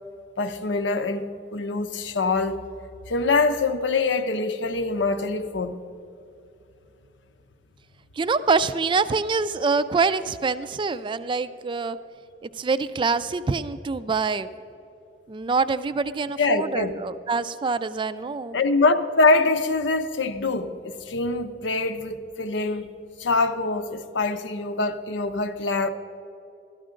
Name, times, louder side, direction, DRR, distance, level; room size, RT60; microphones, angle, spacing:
voice 1, 0.4-2.6 3.1-5.8 16.4-16.9 18.5-22.9 23.2-25.9, left 3 dB, 85° left, 0.7 m, -24 dB
voice 2, 8.2-12.0 12.5-14.5 15.3-18.6, right 4 dB, 25° right, 0.3 m, -25 dB
13.5 x 12.0 x 3.8 m
head